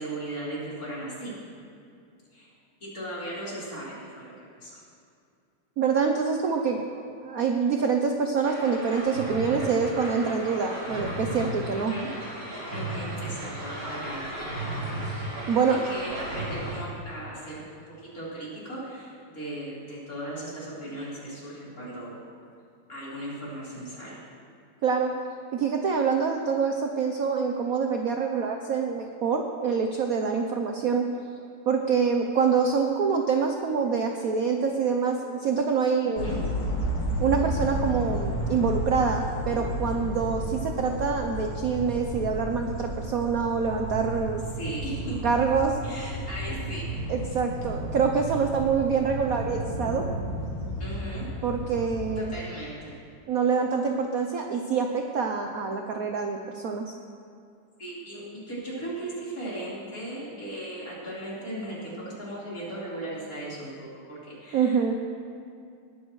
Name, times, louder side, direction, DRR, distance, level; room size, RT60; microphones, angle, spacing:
voice 1, 0.0-1.3 2.3-2.5 2.9-4.8 11.7-12.1 12.7-14.2 15.7-17.7 18.0-22.2 22.9-24.2 36.0-36.4 44.6-45.2 45.8-46.8 50.8-51.2 52.1-52.9 57.8-61.9 62.2-64.8, right 1 dB, 40° left, -8 dB, 4.7 m, -37 dB
voice 2, 5.8-11.9 15.1-15.2 15.5-15.8 24.8-25.1 25.5-31.1 31.7-36.3 37.2-44.4 45.2-45.7 47.1-50.0 51.4-52.3 53.3-56.8 64.5-64.9, right 5 dB, 60° right, 3 dB, 1.0 m, -26 dB
sound 1, 8.4-16.8, right 1 dB, 80° right, 4.6 m, -35 dB
sound 2, 36.2-52.2, equal, 60° left, 2.6 m, -32 dB
20.5 x 12.5 x 3.2 m, 2.4 s
omnidirectional pair, 2.3 m